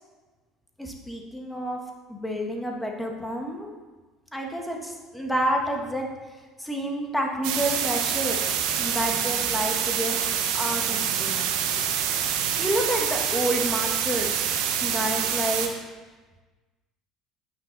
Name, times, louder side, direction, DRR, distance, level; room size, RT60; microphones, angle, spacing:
voice 1, 0.8-1.8 2.1-3.7 4.3-6.1 6.6-8.4 8.8-11.4 12.6-14.5 14.8-15.7, equal, 5° left, 1 dB, 1.4 m, -29 dB
sound 1, 7.4-15.7, right 8 dB, 80° right, 0.9 m, -26 dB
8.8 x 5.5 x 4.0 m, 1.3 s
supercardioid pair, 100°, 0 cm